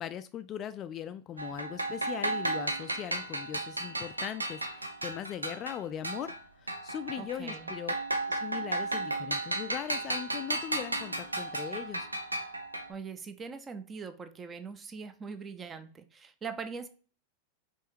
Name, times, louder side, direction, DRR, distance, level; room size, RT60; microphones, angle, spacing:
voice 1, 0.0-6.3 6.6-7.9 8.3-12.1, left 10 dB, 30° left, 0.3 m, -39 dB
sound 1, 1.4-6.4 6.7-12.9, right 2 dB, 80° right, 0.6 m, -34 dB
voice 2, 7.2-7.7 12.9-16.9, right 5 dB, 20° right, 0.6 m, -42 dB
5.4 x 3.1 x 2.7 m
figure-of-eight pair, 90°, 0 cm